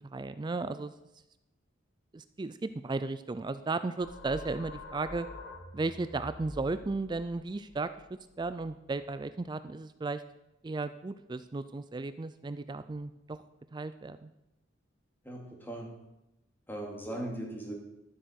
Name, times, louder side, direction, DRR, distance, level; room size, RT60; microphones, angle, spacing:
voice 1, 0.1-0.9 2.1-5.3 5.7-7.9 8.4-10.2 10.6-13.4 13.7-14.3, right 3 dB, 25° right, 12 dB, 0.4 m, -35 dB
sound 1, 4.0-9.3, left 1 dB, 65° left, 2.6 m, -47 dB
voice 2, 15.2-16.0 16.7-17.7, right 1 dB, 10° left, -1 dB, 2.4 m, -39 dB
12.0 x 7.6 x 6.4 m, 0.90 s
head